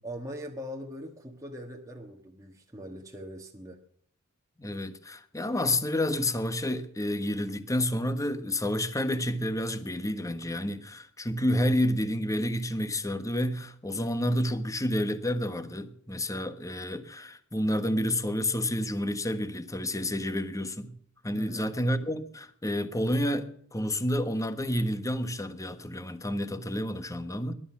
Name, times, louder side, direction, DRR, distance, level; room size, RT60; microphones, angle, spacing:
voice 1, 0.0-3.8 21.3-21.7, equal, 15° right, 1.4 m, -41 dB
voice 2, 4.6-21.0 21.2-27.5, left 1 dB, 15° left, 1.2 m, -29 dB
19.5 x 11.5 x 5.8 m
head